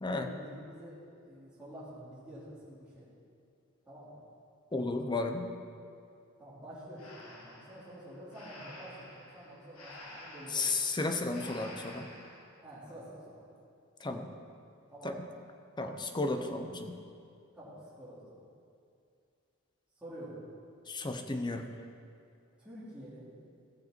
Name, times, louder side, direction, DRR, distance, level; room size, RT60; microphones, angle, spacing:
voice 1, 0.0-3.1 3.8-4.2 6.4-10.8 12.6-13.5 14.9-15.2 17.5-18.4 20.0-20.4 22.6-23.3, right 1 dB, 5° right, -11 dB, 2.9 m, -48 dB
voice 2, 4.7-5.5 10.5-12.1 14.0-14.3 15.0-15.2 15.8-17.0 20.9-21.7, left 3 dB, 20° left, 6 dB, 0.7 m, -33 dB
Breathing, 7.0-12.5, left 1 dB, 85° left, 1.9 m, -50 dB
16.0 x 6.6 x 4.4 m, 2.5 s
head